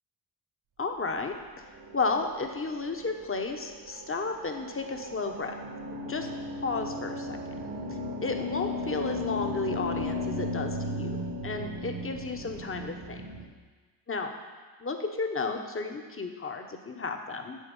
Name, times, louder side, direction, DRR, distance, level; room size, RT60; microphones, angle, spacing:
voice 1, 0.8-1.4 1.9-5.5 6.1-6.3 6.6-7.4 7.9-11.2 11.4-13.2 14.1-14.3 14.8-17.6, left 4 dB, 30° left, 4 dB, 1.2 m, -33 dB
sound 1, 1.6-13.4, left 1 dB, 70° right, 1.8 m, -36 dB
7.5 x 7.0 x 5.5 m, 1.4 s
supercardioid pair, 60°, 43 cm